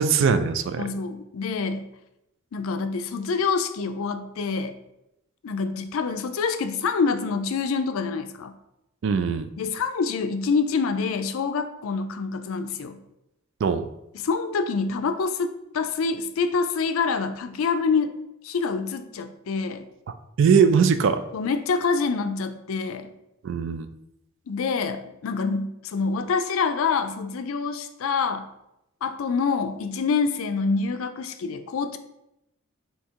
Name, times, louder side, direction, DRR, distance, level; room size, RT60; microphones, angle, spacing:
voice 1, 0.0-0.8 9.0-9.5 13.6-13.8 20.4-21.2 23.4-23.9, right 6 dB, 55° right, 10 dB, 0.3 m, -20 dB
voice 2, 0.8-1.9 2.5-4.8 5.4-8.5 9.6-13.0 14.2-18.2 18.4-19.8 21.3-23.1 24.5-28.5 29.0-32.0, left 5 dB, 70° left, 9 dB, 0.4 m, -26 dB
3.6 x 2.8 x 4.4 m, 0.85 s
head